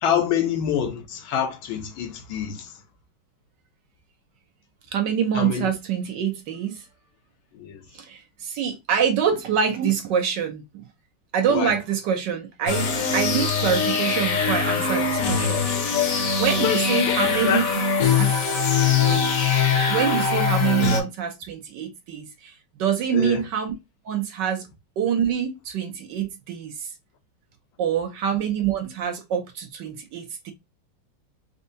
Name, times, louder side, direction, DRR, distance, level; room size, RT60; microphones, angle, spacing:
voice 1, 0.0-2.7 5.3-5.7 7.6-7.8 11.5-11.7 16.6-16.8 17.1-17.2 17.4-17.6 23.1-23.4, left 8 dB, 80° left, 1.6 m, -26 dB
voice 2, 4.9-6.8 7.9-10.8 11.3-15.6 16.4-17.6 18.2-18.3 19.0-19.2 19.9-22.5 22.8-23.7 24.0-24.7 25.0-26.9 27.8-30.5, right 8 dB, 70° right, 1.2 m, -25 dB
sound 1, 12.7-21.0, left 5 dB, 55° left, 1.0 m, -22 dB
4.4 x 2.6 x 2.6 m
omnidirectional pair, 2.2 m